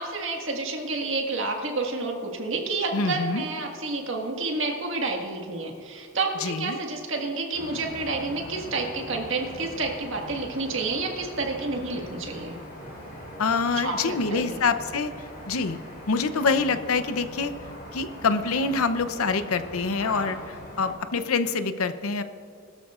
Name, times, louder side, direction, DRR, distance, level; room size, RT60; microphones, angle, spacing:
voice 1, 0.0-12.5 13.8-14.6, right 3 dB, 60° right, 1 dB, 1.8 m, -29 dB
voice 2, 2.9-3.4 6.4-6.8 13.4-15.1 15.5-15.8 16.1-17.5 17.9-22.2, left 4 dB, 80° left, 10 dB, 0.7 m, -26 dB
sound 1, 7.5-20.9, equal, 40° left, 3.7 m, -41 dB
20.5 x 12.5 x 2.5 m, 2.3 s
head